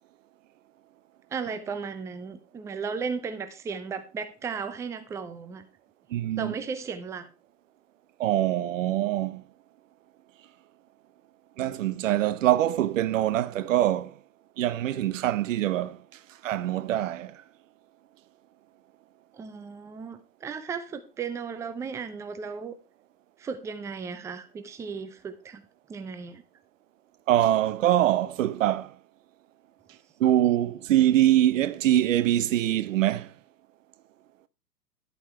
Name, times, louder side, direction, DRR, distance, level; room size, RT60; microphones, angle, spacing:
voice 1, 1.3-5.6 6.4-7.3 19.3-22.8 23.4-25.6 25.9-26.4, right 5 dB, 5° right, 0.6 m, -35 dB
voice 2, 6.1-6.5 8.2-9.4 11.6-14.2 14.6-16.0 16.4-17.4 27.3-29.0 30.2-33.3, right 13 dB, 50° right, 0.9 m, -24 dB
11.5 x 8.2 x 4.4 m
figure-of-eight pair, 115°, 49 cm